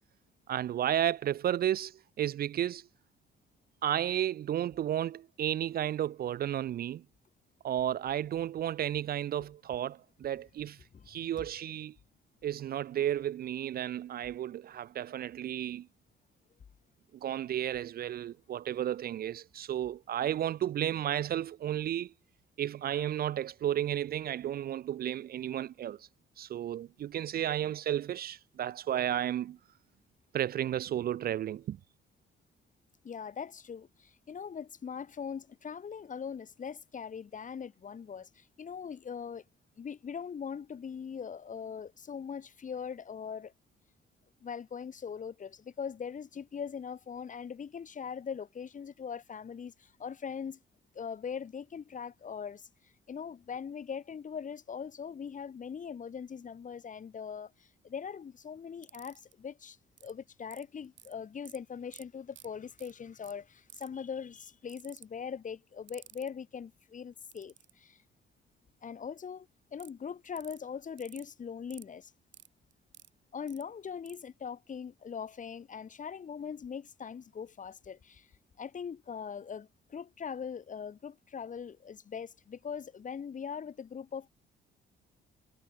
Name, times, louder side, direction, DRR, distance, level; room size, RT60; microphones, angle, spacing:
voice 1, 0.5-2.9 3.8-7.0 7.6-10.8 11.1-11.9 12.4-15.9 17.2-22.1 22.6-26.1 26.4-29.6 30.3-31.8, right 11 dB, 50° right, 0.4 m, -33 dB
voice 2, 33.0-39.4 39.8-43.5 44.4-50.6 50.9-52.7 53.1-59.8 60.0-68.0 68.8-72.1 73.3-78.3 78.6-84.3, left 7 dB, 40° left, 1.2 m, -41 dB
sound 1, 58.8-59.3 60.0-60.1 60.5-61.1 61.5-61.6 61.9-62.0 62.3-62.5 62.8-62.9 63.2-63.3 63.7-64.0 64.7-65.1 65.9-66.3 67.3-67.7 69.8-69.9 70.4-70.6 71.0-71.2 71.7-71.8 72.3-73.1 73.5-73.6 74.1-74.2, right 11 dB, 70° right, 3.0 m, -52 dB
cardioid pair, 90°, 20 cm